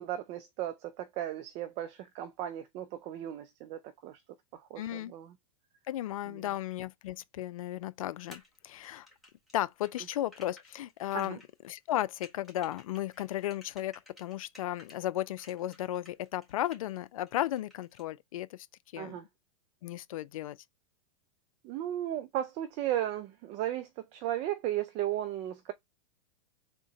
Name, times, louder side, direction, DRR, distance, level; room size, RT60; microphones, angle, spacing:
voice 1, 0.0-4.2 4.5-5.3 6.3-6.4 11.1-11.4 19.0-19.2 21.6-25.7, right 12 dB, 35° right, 0.4 m, -35 dB
voice 2, 4.8-5.1 5.9-9.1 9.5-11.4 11.6-18.7 18.9-19.2 19.8-20.6, left 13 dB, 70° left, 0.4 m, -35 dB
sound 1, 8.3-15.0 15.4-17.0 17.3-18.0, left 1 dB, ahead, 1.6 m, -56 dB
3.7 x 2.2 x 3.9 m
hypercardioid pair, 120°, 18 cm